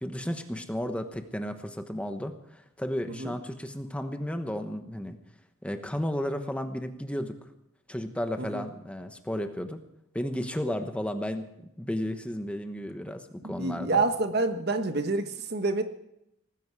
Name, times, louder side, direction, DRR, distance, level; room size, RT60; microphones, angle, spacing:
voice 1, 0.0-5.2 5.6-7.4 7.9-9.8 10.1-11.5 11.8-14.0, equal, 5° left, 7 dB, 1.1 m, -33 dB
voice 2, 13.4-15.8, right 3 dB, 50° right, 8 dB, 1.3 m, -28 dB
18.5 x 15.5 x 4.8 m, 0.82 s
head